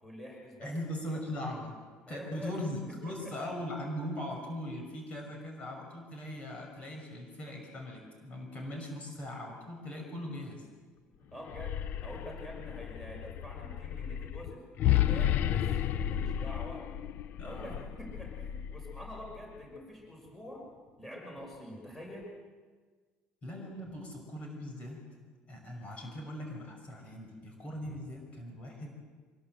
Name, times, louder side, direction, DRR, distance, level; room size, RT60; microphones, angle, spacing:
voice 1, 0.0-0.7 2.1-2.6 2.9-3.4 11.3-15.7 16.0-16.9 17.4-20.7 21.0-22.3, equal, 5° left, -1 dB, 6.3 m, -46 dB
voice 2, 0.6-1.7 2.1-10.7 17.4-17.8 23.4-25.0 25.5-29.0, left 1 dB, 30° left, 2 dB, 5.8 m, -40 dB
sound 1, 11.4-19.5, left 11 dB, 50° left, 0.7 m, -33 dB
25.0 x 22.0 x 7.9 m, 1.5 s
cardioid pair, 160°, 4 cm